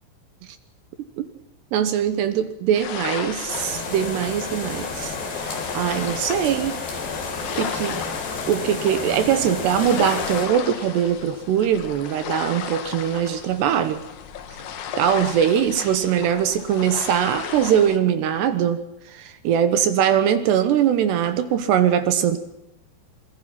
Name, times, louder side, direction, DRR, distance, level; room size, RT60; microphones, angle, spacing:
voice 1, 1.7-5.2 5.4-6.8 7.5-8.0 8.5-14.0 15.0-18.8 19.1-22.4, right 9 dB, 70° right, 10 dB, 2.8 m, -21 dB
sound 1, 2.7-18.0, left 8 dB, 85° left, 1.6 m, -34 dB
sound 2, 3.5-10.5, left 4 dB, 55° left, 6.2 m, -31 dB
26.0 x 21.0 x 5.9 m, 0.80 s
omnidirectional pair, 5.8 m